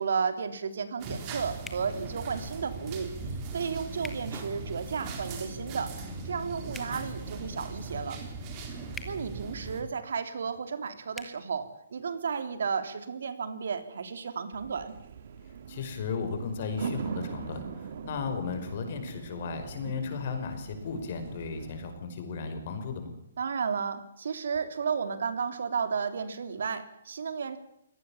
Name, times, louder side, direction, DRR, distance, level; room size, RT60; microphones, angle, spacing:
voice 1, 0.0-3.1 3.5-5.9 6.2-8.2 9.0-15.0 23.4-27.6, right 6 dB, 70° right, 10 dB, 3.3 m, -33 dB
sound 1, 1.0-9.8, right 3 dB, 25° right, 3.9 m, -39 dB
sound 2, 1.6-1.9 4.0-4.2 6.7-6.9 8.9-9.1 11.1-11.3, left 4 dB, 5° left, 1.4 m, -42 dB
sound 3, 14.5-21.9, right 7 dB, 45° right, 2.0 m, -41 dB
voice 2, 15.7-23.1, left 5 dB, 40° left, 7 dB, 5.4 m, -35 dB
24.0 x 18.0 x 7.3 m, 0.75 s
hypercardioid pair, 170°, 0 cm